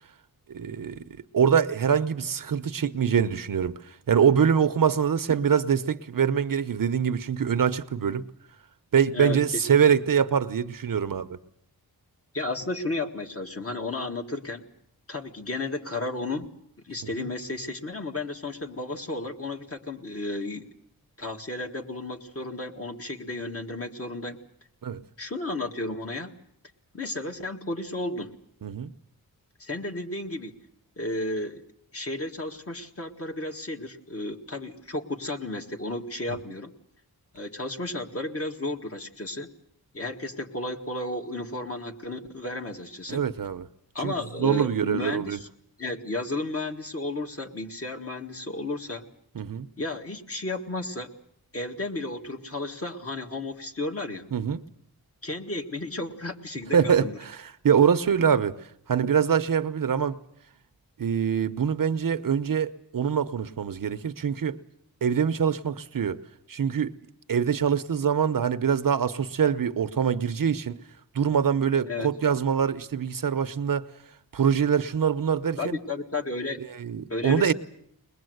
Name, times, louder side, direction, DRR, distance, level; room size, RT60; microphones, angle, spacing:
voice 1, 0.5-1.0 1.3-8.3 8.9-11.4 17.2-17.3 24.8-25.0 28.6-28.9 36.3-36.4 43.1-43.7 44.0-45.4 49.3-49.7 54.3-54.6 56.7-58.6 58.9-60.2 61.0-64.6 65.0-66.2 66.5-66.9 67.3-70.8 71.1-73.9 74.3-75.8 76.6-77.5, right 7 dB, 60° right, 0.9 m, -24 dB
voice 2, 9.1-9.8 12.3-14.7 15.1-16.5 16.8-20.6 21.2-24.4 25.2-26.4 26.9-28.4 29.6-30.5 31.0-31.6 31.9-36.7 37.3-39.5 39.9-43.2 43.9-45.5 45.8-49.1 49.8-51.1 51.5-54.3 55.2-57.2 71.9-72.1 75.6-76.6 77.1-77.5, left 2 dB, 40° left, 1.9 m, -33 dB
22.0 x 21.0 x 7.9 m
wide cardioid pair, 135°, 37 cm